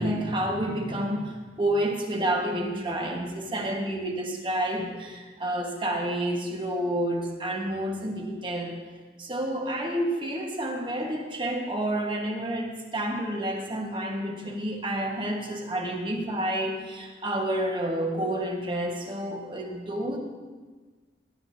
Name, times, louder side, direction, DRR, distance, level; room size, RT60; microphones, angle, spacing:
voice 1, 0.0-8.7 9.2-20.2, right 1 dB, 30° right, 1 dB, 1.4 m, -29 dB
17.0 x 11.5 x 2.7 m, 1.4 s
head